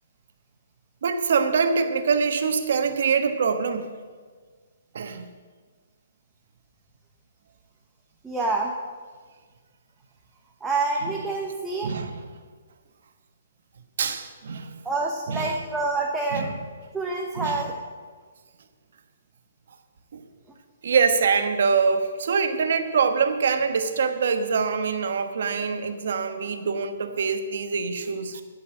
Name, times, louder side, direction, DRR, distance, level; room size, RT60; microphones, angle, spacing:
voice 1, 1.0-3.9 4.9-5.3 11.1-11.2 11.8-12.3 14.0-14.8 15.3-15.6 16.3-16.6 17.4-17.6 20.1-20.2 20.8-28.4, right 5 dB, 65° right, 8 dB, 1.3 m, -24 dB
voice 2, 8.2-8.7 10.6-11.9 14.8-16.5 16.9-17.7, right 3 dB, 5° right, -1 dB, 0.9 m, -27 dB
14.0 x 5.7 x 8.6 m, 1.5 s
hypercardioid pair, 160°, 0 cm